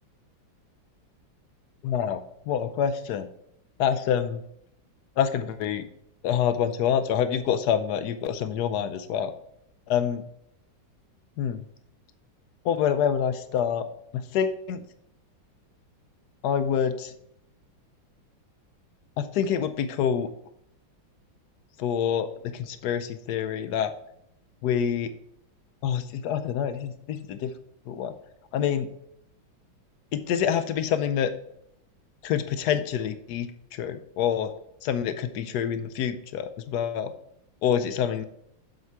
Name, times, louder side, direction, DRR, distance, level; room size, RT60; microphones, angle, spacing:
voice 1, 1.8-3.3 3.8-4.4 5.2-5.9 6.2-9.3 9.9-10.2 11.4-11.6 12.6-13.9 14.1-14.8 16.4-17.1 19.2-20.3 21.8-23.9 24.6-25.1 25.8-27.5 27.9-28.1 28.5-28.9 30.1-31.3 32.2-34.5 34.8-37.1 37.6-38.2, left 8 dB, 75° left, 12 dB, 0.9 m, -26 dB
7.7 x 5.7 x 4.5 m, 0.75 s
omnidirectional pair, 2.2 m